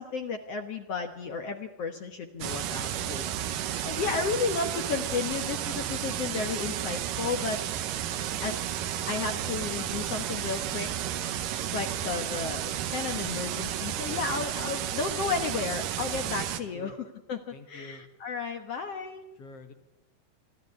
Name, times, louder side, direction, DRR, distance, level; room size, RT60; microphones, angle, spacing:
voice 1, 0.0-3.3 3.8-7.6 8.4-10.9 11.7-17.4 17.7-19.2, left 5 dB, 65° left, 5 dB, 1.5 m, -33 dB
sound 1, 2.4-16.6, right 11 dB, 70° right, 2.4 m, -32 dB
sound 2, 3.6-6.8, right 6 dB, 50° right, 3.7 m, -51 dB
voice 2, 4.0-4.4 8.1-8.4 12.0-12.3 16.6-17.0 17.5-18.1 19.4-19.7, left 3 dB, 50° left, 6 dB, 2.2 m, -47 dB
26.5 x 13.0 x 9.7 m, 0.97 s
omnidirectional pair, 4.6 m